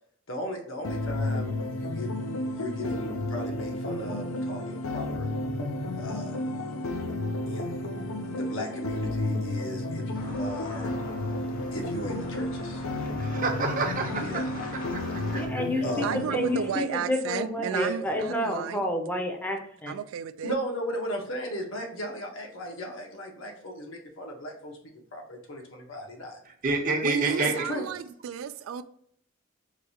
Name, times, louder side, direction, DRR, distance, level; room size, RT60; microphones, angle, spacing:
voice 1, 0.3-5.3 6.0-6.5 7.5-7.9 8.3-10.9 11.7-12.9 14.2-14.4 15.8-16.2 17.7-18.2 20.4-24.8 25.1-26.4 27.4-27.8, equal, 75° left, 0.9 m, -36 dB
sound 1, 0.8-16.8, left 1 dB, 90° left, 0.5 m, -32 dB
sound 2, 10.1-15.5, left 1 dB, 45° left, 0.8 m, -43 dB
voice 2, 13.2-14.4 14.7-15.0 15.3-15.6 26.6-27.6, right 3 dB, 40° right, 0.7 m, -28 dB
voice 3, 15.3-15.8 16.1-19.9, left 1 dB, 10° left, 0.6 m, -30 dB
voice 4, 16.0-18.8 19.9-20.5 27.0-28.8, right 8 dB, 80° right, 0.3 m, -33 dB
4.6 x 2.3 x 2.8 m
head